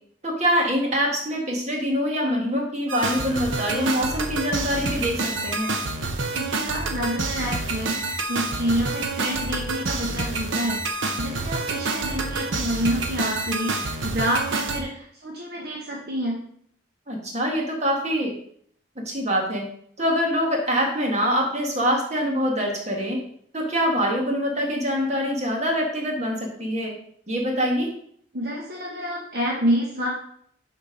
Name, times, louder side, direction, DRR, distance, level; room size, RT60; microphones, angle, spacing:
voice 1, 0.2-5.8 17.1-18.3 18.9-19.6 20.0-23.2 23.5-26.9 27.3-27.9, equal, 35° right, 0 dB, 1.7 m, -24 dB
sound 1, 2.9-14.8, right 3 dB, 75° right, 0.9 m, -28 dB
voice 2, 6.3-16.4 28.3-30.1, equal, 50° right, -3 dB, 1.2 m, -28 dB
7.2 x 4.5 x 5.2 m, 0.65 s
head